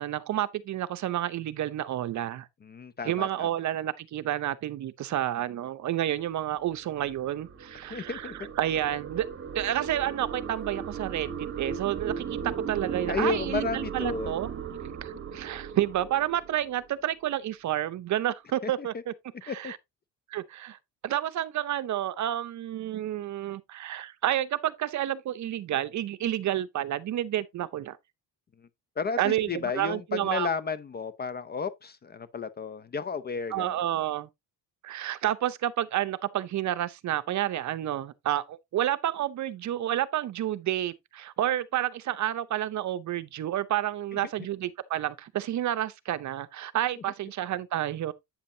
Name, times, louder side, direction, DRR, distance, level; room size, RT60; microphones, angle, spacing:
voice 1, 0.0-2.5 3.0-9.3 9.5-12.4 12.7-14.6 15.0-19.1 19.4-19.8 20.3-20.8 21.0-28.0 29.2-30.5 33.5-34.3 34.8-48.1, right 12 dB, 45° right, 0.7 m, -30 dB
voice 2, 2.6-3.5 7.9-8.3 13.1-14.3 18.6-18.9 19.5-19.7 29.0-33.8, left 5 dB, 25° left, 0.5 m, -33 dB
sound 1, 6.5-17.0, right 7 dB, 30° right, 1.1 m, -37 dB
8.6 x 7.3 x 2.7 m
cardioid pair, 150°, 39 cm